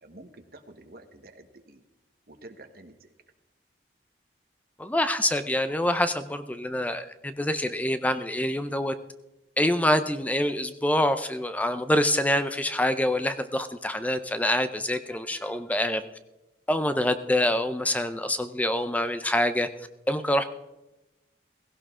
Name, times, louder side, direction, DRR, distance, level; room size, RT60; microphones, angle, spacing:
voice 1, 0.0-1.8 2.3-2.9, right 2 dB, 55° right, 6 dB, 1.2 m, -49 dB
voice 2, 4.8-8.9 9.6-16.0 16.7-19.7 20.1-20.4, left 1 dB, 10° left, 11 dB, 0.5 m, -26 dB
16.5 x 16.0 x 3.7 m, 0.99 s
head